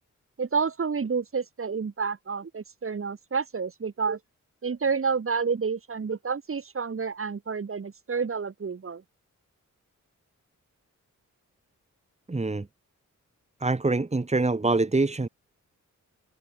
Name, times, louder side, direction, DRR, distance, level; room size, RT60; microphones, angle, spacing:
voice 1, 0.4-4.2 4.6-9.0, right 5 dB, 45° right, 6.9 m, -29 dB
voice 2, 12.3-12.7 13.6-15.3, right 3 dB, 20° right, 3.6 m, -25 dB
wide cardioid pair, 150°, 31 cm